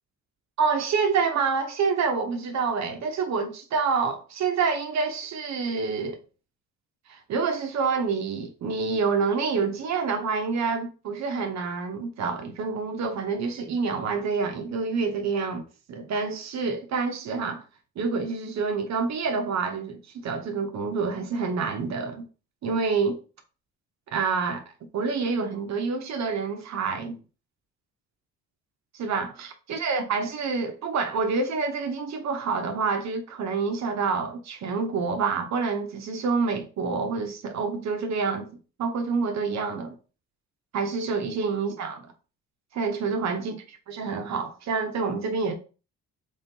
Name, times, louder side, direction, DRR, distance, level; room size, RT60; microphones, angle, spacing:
voice 1, 0.6-6.2 7.1-15.6 15.9-17.6 18.0-22.2 22.6-23.2 24.1-24.6 24.9-27.2 28.9-38.5 38.8-39.9 40.7-42.1 42.7-45.5, right 5 dB, 65° right, 0.9 m, -27 dB
3.6 x 3.5 x 2.8 m
cardioid pair, 90°, 30 cm